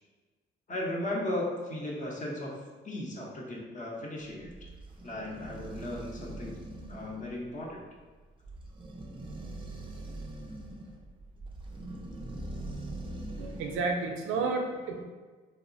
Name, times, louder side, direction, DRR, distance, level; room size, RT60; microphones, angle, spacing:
voice 1, 0.7-2.5 2.8-4.5 5.0-6.6 6.9-7.8, left 1 dB, 40° left, -2 dB, 0.7 m, -36 dB
sound 1, 4.3-13.9, right 2 dB, 25° right, 0.4 m, -42 dB
voice 2, 13.4-15.0, right 3 dB, 85° right, 2 dB, 0.4 m, -31 dB
2.9 x 2.0 x 2.5 m, 1.4 s
cardioid pair, 90°, 20 cm